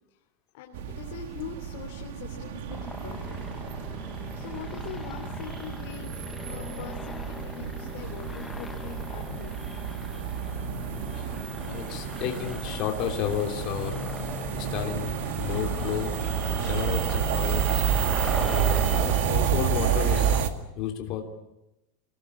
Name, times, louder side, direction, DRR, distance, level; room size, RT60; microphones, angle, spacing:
voice 1, 0.5-3.4 4.3-9.6, left 8 dB, 60° left, 1 dB, 3.0 m, -43 dB
sound 1, 0.7-20.5, right 9 dB, 70° right, 2.1 m, -30 dB
sound 2, 2.7-20.4, left 3 dB, 10° left, 0.8 m, -40 dB
voice 2, 11.6-13.9 14.5-16.2 16.6-18.1 18.5-21.2, left 9 dB, 35° left, 3 dB, 3.2 m, -32 dB
26.0 x 19.0 x 8.6 m, 0.93 s
supercardioid pair, 170°, 0 cm